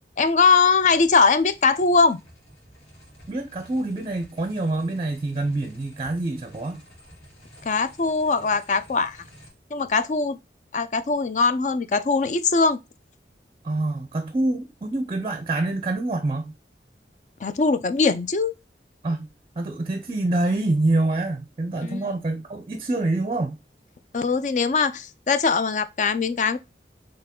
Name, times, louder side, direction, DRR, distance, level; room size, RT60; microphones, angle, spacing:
voice 1, 0.2-2.2 7.6-9.2 9.7-10.4 10.7-12.8 17.4-18.5 21.8-22.0 24.1-26.6, left 4 dB, 45° left, 0.4 m, -21 dB
sound 1, 0.6-9.5, equal, 85° left, 2.2 m, -51 dB
voice 2, 3.3-6.8 13.6-16.5 19.0-19.3 19.6-23.6, right 2 dB, 30° right, 0.5 m, -26 dB
4.5 x 3.2 x 3.6 m
head